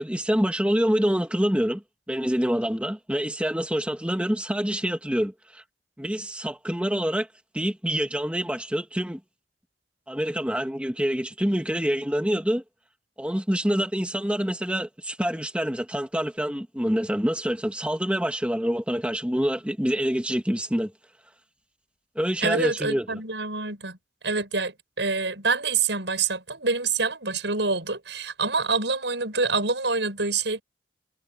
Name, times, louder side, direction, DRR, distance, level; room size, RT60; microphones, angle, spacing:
voice 1, 0.0-1.8 2.1-5.6 6.0-7.3 7.5-9.2 10.1-12.6 13.2-20.9 22.2-23.2, equal, 5° right, 2.0 m, -26 dB
voice 2, 22.4-24.0 24.2-30.6, right 4 dB, 85° right, 6.6 m, -26 dB
head